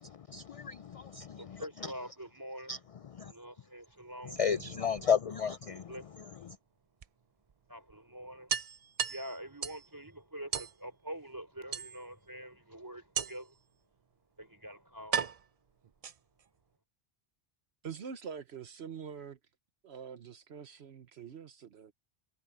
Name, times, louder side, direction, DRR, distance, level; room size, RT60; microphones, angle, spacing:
voice 1, 0.3-1.6 2.7-2.8 3.2-3.3 4.3-5.8, left 7 dB, 55° left, 0.4 m, -32 dB
voice 2, 1.4-2.8 3.2-4.4 5.4-6.2 7.7-8.5 9.1-13.5 14.4-15.2, right 1 dB, 20° right, 5.2 m, -46 dB
sound 1, 4.5-5.5 7.0-7.1 7.5-7.6 7.9-8.0 8.5-9.9 10.5-10.8 11.7-12.3 13.2-13.6 14.4-14.5 15.1-16.5, right 7 dB, 45° right, 0.5 m, -36 dB
voice 3, 17.8-19.4 19.8-21.9, right 7 dB, 75° right, 1.2 m, -45 dB
omnidirectional pair, 1.1 m